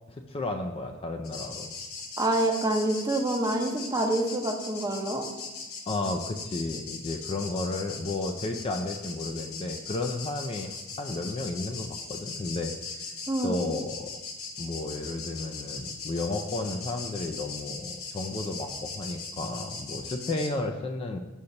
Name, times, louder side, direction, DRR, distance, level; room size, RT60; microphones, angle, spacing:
voice 1, 0.1-1.7 5.9-13.1 13.4-14.1 14.6-21.2, left 2 dB, 25° left, 5 dB, 0.3 m, -33 dB
sound 1, 1.2-20.5, left 4 dB, 90° left, 0.8 m, -39 dB
voice 2, 2.2-5.3 13.3-13.6, right 1 dB, 20° right, 2 dB, 0.6 m, -27 dB
6.5 x 2.9 x 5.2 m, 1.1 s
head